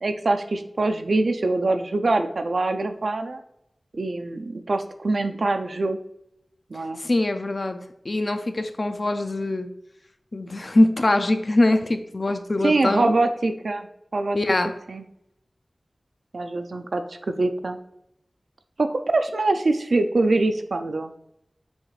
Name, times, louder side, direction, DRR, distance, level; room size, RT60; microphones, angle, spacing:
voice 1, 0.0-3.4 3.9-6.0 6.7-7.0 12.6-13.9 14.1-14.4 14.9-15.0 16.3-17.8 18.8-21.1, right 2 dB, 80° right, 7 dB, 0.4 m, -24 dB
voice 2, 7.0-9.7 10.3-13.1 14.3-14.7, left 2 dB, 50° left, 8 dB, 0.4 m, -23 dB
6.2 x 2.4 x 3.1 m, 0.78 s
wide cardioid pair, 75°, 0 cm